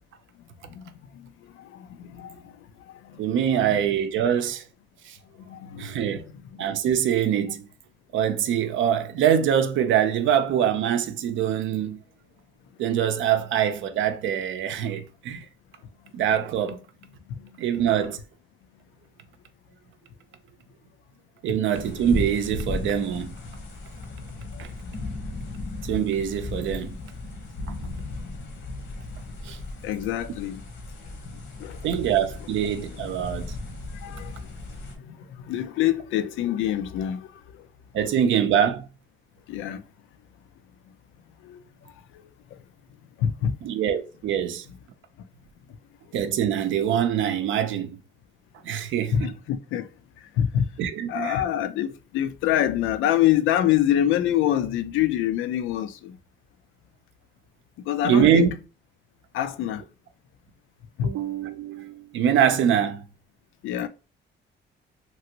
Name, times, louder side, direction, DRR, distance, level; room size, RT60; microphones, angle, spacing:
voice 1, 1.6-2.5 3.0-3.2 3.5-3.8 5.5-6.2 6.5-6.6 17.3-17.5 21.5-21.6 24.5-24.6 29.8-30.6 31.6-31.8 34.0-34.4 35.0-37.3 39.5-39.8 41.4-41.6 43.2-43.6 49.1-49.9 50.4-50.7 51.1-56.2 57.9-58.5 59.3-59.8 61.0-61.1 63.6-63.9, left 11 dB, 85° left, 0.4 m, -26 dB
voice 2, 3.2-4.6 5.0-5.2 5.8-6.3 6.6-7.7 8.1-12.0 12.8-15.5 16.1-16.8 17.6-18.2 21.4-23.3 24.6-24.7 25.8-26.9 27.7-27.8 29.4-29.6 31.8-33.5 37.9-38.9 43.6-44.7 46.1-48.0 48.6-49.3 50.8-51.4 58.0-58.5 61.0-63.0, right 9 dB, 75° right, 0.5 m, -24 dB
sound 1, 21.7-34.9, left 2 dB, 70° left, 1.0 m, -36 dB
3.0 x 2.5 x 2.8 m
cardioid pair, 90°, 20 cm